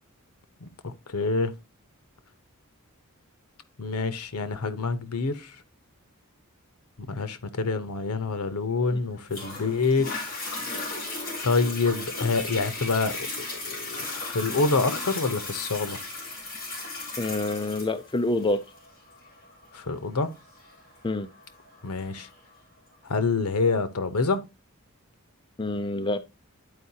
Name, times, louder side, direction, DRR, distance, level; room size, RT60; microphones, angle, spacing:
voice 1, 0.6-1.5 3.8-5.5 7.0-10.4 11.4-16.0 19.7-20.3 21.8-22.3 23.0-24.4, left 4 dB, 90° left, 0.9 m, -27 dB
Toilet flush, 9.3-22.3 22.9-23.0, left 3 dB, 40° left, 4.1 m, -36 dB
voice 2, 17.2-18.6 21.0-21.3 25.6-26.2, left 2 dB, 20° left, 0.4 m, -27 dB
11.5 x 4.7 x 2.8 m
head